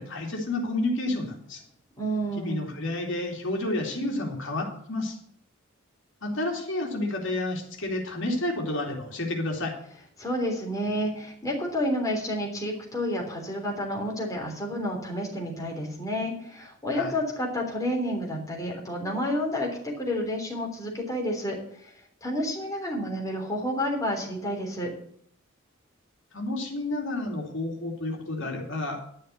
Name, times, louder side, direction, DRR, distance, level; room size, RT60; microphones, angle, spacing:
voice 1, 0.0-1.6 2.3-5.2 6.2-9.7 16.9-17.2 26.3-29.0, left 2 dB, 65° left, 1 dB, 2.7 m, -30 dB
voice 2, 2.0-2.6 10.2-21.9 22.2-24.9, equal, 15° left, -1 dB, 3.4 m, -30 dB
11.0 x 6.5 x 8.1 m, 0.65 s
head